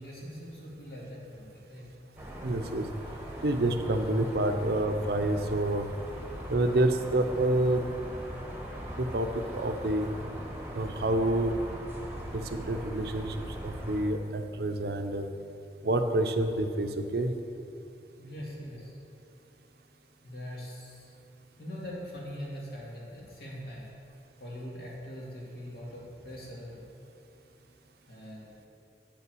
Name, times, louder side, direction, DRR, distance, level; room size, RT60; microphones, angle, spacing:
voice 1, 0.0-1.9 18.2-18.9 20.2-21.1 21.6-23.9 24.4-26.8 28.1-28.6, equal, 60° left, -5 dB, 2.1 m, -42 dB
sound 1, 2.2-14.0, equal, 10° right, 1.1 m, -40 dB
voice 2, 2.4-2.9 3.4-5.9 6.5-7.9 9.0-10.1 10.7-11.5 12.3-13.4 13.6-15.3 15.8-17.3, right 1 dB, 60° right, 7 dB, 0.5 m, -28 dB
8.6 x 5.6 x 6.1 m, 2.6 s
head